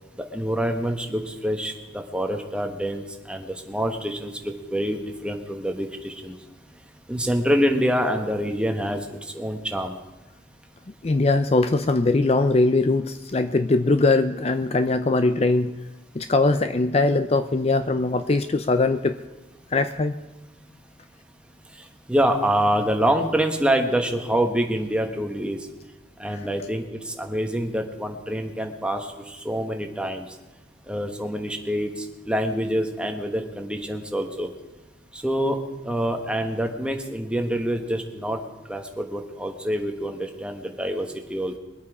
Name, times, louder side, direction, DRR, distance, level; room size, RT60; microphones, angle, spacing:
voice 1, 0.3-6.3 7.1-9.1 9.3-10.0 22.1-25.6 26.2-30.3 30.9-34.5 35.1-35.6 35.8-38.4 38.7-41.6, equal, 5° right, 4 dB, 1.2 m, -26 dB
voice 2, 11.0-15.7 16.1-19.2 19.7-20.2, left 3 dB, 35° left, 10 dB, 0.5 m, -21 dB
22.5 x 8.5 x 4.8 m, 1.1 s
head